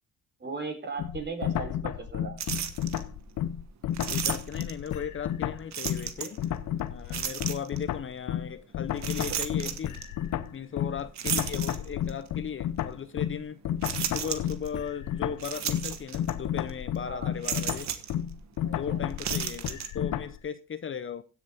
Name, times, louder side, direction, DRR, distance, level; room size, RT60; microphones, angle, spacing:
voice 1, 0.4-2.4 17.1-17.3 18.6-19.0, right 4 dB, 35° right, 3.7 m, -37 dB
sound 1, 1.0-6.1 6.4-20.4, left 10 dB, 75° left, 0.8 m, -32 dB
sound 2, 2.4-3.0 3.9-4.9 5.7-6.4 7.1-7.8 9.0-10.1 11.2-12.2 12.8-12.9 13.8-14.7 15.4-16.3 16.6-16.7 17.4-18.1 19.1-19.9, right 9 dB, 65° right, 1.3 m, -33 dB
voice 2, 4.1-6.4 6.9-10.0 10.5-13.6 14.0-17.9 18.7-21.2, left 7 dB, 40° left, 0.8 m, -37 dB
16.0 x 7.1 x 3.6 m
cardioid pair, 90°, 30 cm